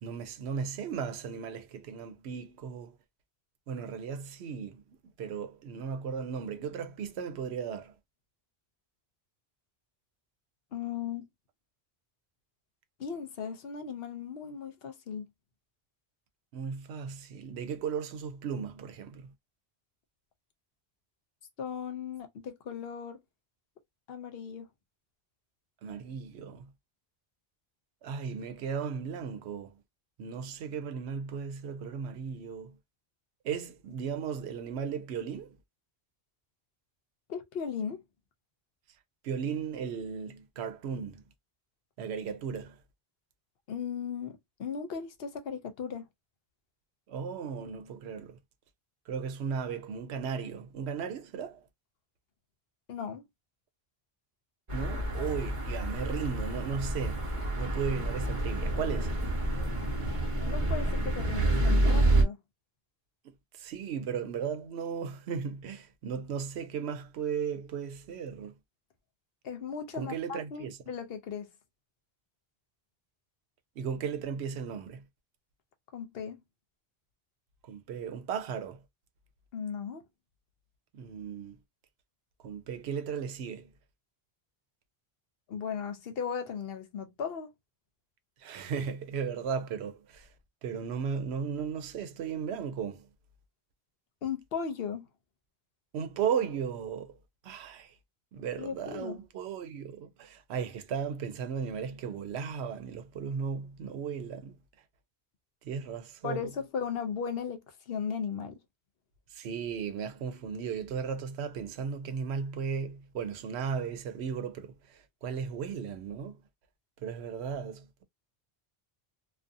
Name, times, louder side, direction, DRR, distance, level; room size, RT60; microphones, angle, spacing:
voice 1, 0.0-3.0 3.7-4.8 5.2-7.9 16.5-19.3 25.8-26.7 28.0-29.8 30.2-32.7 33.4-35.5 39.2-41.2 42.0-42.8 47.1-48.4 49.1-51.6 54.7-59.2 63.2-68.5 69.9-70.8 73.8-75.0 77.6-78.8 80.9-81.6 82.4-83.7 88.4-90.3 90.6-93.1 95.9-97.2 97.4-97.9 98.3-104.6 105.6-106.5 109.3-116.4 117.0-118.0, right 6 dB, 85° right, 0.8 m, -36 dB
voice 2, 10.7-11.3 13.0-15.3 21.6-23.2 24.1-24.7 37.3-38.0 43.7-46.1 52.9-53.2 60.5-62.4 69.4-71.5 75.9-76.4 79.5-80.0 85.5-87.5 94.2-95.1 98.6-99.2 106.2-108.6, left 7 dB, 70° left, 0.9 m, -36 dB
sound 1, 54.7-62.2, right 1 dB, 30° right, 0.9 m, -28 dB
2.5 x 2.3 x 2.5 m
omnidirectional pair, 1.1 m